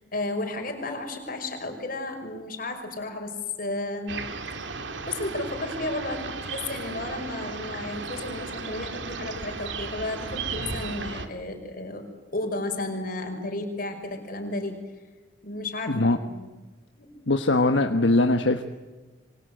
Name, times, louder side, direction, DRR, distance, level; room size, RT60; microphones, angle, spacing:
voice 1, 0.0-4.2 5.1-12.0 12.3-14.8 15.4-16.5 17.0-17.1, left 2 dB, 50° left, 4 dB, 5.8 m, -33 dB
sound 1, 4.1-11.3, right 4 dB, 80° right, 2.5 m, -35 dB
voice 2, 15.9-16.2 17.3-18.6, left 2 dB, 85° left, 6 dB, 1.3 m, -21 dB
28.0 x 24.5 x 8.0 m, 1.2 s
head